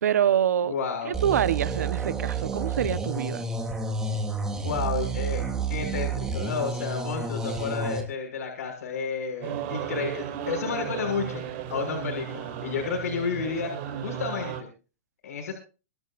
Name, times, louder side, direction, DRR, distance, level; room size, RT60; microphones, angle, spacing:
voice 1, 0.0-0.7 1.0-3.4, right 9 dB, 80° right, 1.2 m, -25 dB
voice 2, 0.6-1.1 4.6-11.4 11.7-13.7 14.0-14.7 15.2-15.5, left 5 dB, 75° left, 6.7 m, -31 dB
sound 1, 1.1-8.0, right 4 dB, 5° right, 2.9 m, -30 dB
sound 2, 9.4-14.6, right 9 dB, 35° right, 4.5 m, -34 dB
26.0 x 12.5 x 2.6 m
hypercardioid pair, 160°, 9 cm